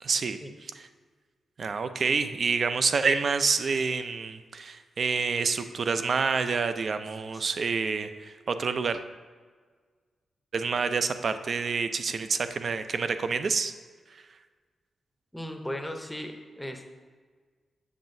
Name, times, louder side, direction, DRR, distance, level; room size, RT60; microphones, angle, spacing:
voice 1, 0.0-0.4 1.6-9.0 10.5-13.7, right 5 dB, 45° right, 10 dB, 0.4 m, -28 dB
voice 2, 15.3-16.9, equal, 5° left, 4 dB, 0.6 m, -37 dB
7.5 x 6.9 x 2.6 m, 1.5 s
wide cardioid pair, 140°, 0 cm